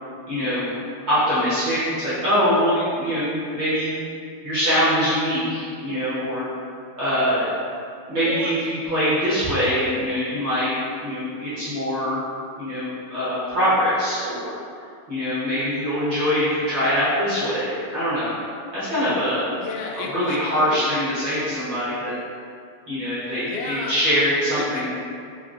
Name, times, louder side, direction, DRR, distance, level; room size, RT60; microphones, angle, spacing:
voice 1, 0.3-0.8 1.1-3.9 4.4-6.5 7.0-7.5 8.1-12.2 12.6-14.6 15.1-18.3 18.7-19.5 20.1-22.1 22.9-24.9, equal, 50° right, -13 dB, 1.5 m, -23 dB
voice 2, 8.2-8.6 19.5-20.8 23.4-24.0 24.6-24.9, left 4 dB, 90° left, -1 dB, 2.0 m, -32 dB
5.3 x 2.8 x 2.5 m, 2.4 s
omnidirectional pair, 3.3 m